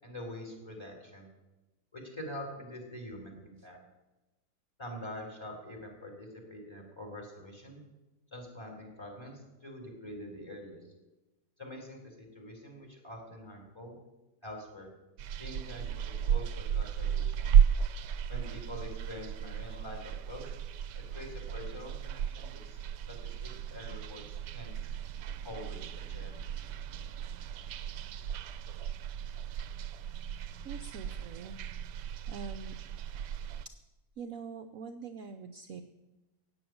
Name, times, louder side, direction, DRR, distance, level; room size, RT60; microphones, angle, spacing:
voice 1, 0.0-1.3 1.9-3.8 4.8-7.8 8.3-10.8 11.6-13.9 14.4-14.9 15.4-17.5 18.3-20.6 20.9-22.8 23.1-24.7 25.4-26.3, left 1 dB, 15° left, 2 dB, 3.8 m, -45 dB
sound 1, 15.2-33.7, right 8 dB, 80° right, 1.3 m, -33 dB
voice 2, 30.6-31.6 32.3-32.7 34.2-35.8, right 5 dB, 60° right, 7 dB, 1.1 m, -44 dB
16.0 x 7.1 x 9.4 m, 1.0 s
omnidirectional pair, 1.8 m